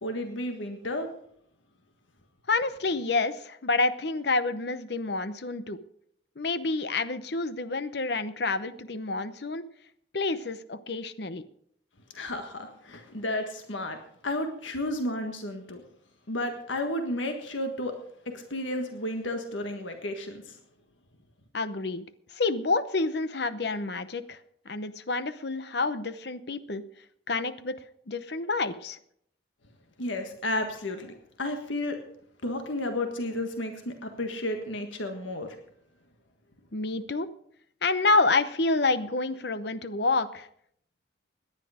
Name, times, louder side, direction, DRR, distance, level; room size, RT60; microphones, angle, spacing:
voice 1, 0.0-1.1 12.1-14.0 14.2-15.8 16.3-17.9 18.2-20.6 30.0-32.0 32.4-35.6, left 1 dB, 80° left, 5 dB, 1.6 m, -32 dB
voice 2, 2.5-5.8 6.4-9.6 10.1-11.4 21.5-22.0 22.3-24.4 24.7-26.8 27.3-27.8 28.1-29.0 36.7-37.3 37.8-40.5, left 3 dB, 60° left, 13 dB, 0.8 m, -28 dB
18.0 x 11.0 x 5.0 m, 0.68 s
head